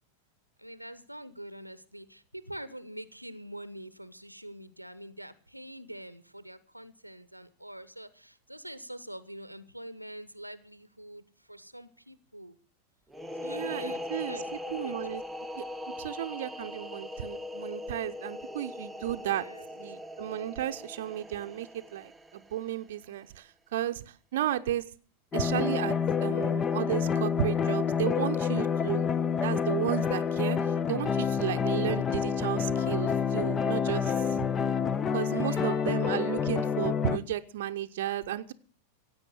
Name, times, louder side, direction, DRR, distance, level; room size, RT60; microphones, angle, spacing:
voice 1, 0.6-12.6 13.4-15.0 19.1-19.7 35.2-35.9, right 1 dB, 90° right, 16 dB, 0.8 m, -45 dB
sound 1, 13.1-22.6, left 1 dB, 5° right, 0.9 m, -40 dB
voice 2, 13.4-14.4 14.7-15.2 15.5-15.6 16.0-19.5 19.7-24.8 25.3-29.1 29.4-34.4 35.1-38.5, right 12 dB, 55° right, 7 dB, 0.7 m, -33 dB
sound 2, 25.3-37.2, left 6 dB, 20° left, 0.7 m, -28 dB
16.0 x 8.3 x 8.2 m, 0.42 s
figure-of-eight pair, 90°, 0 cm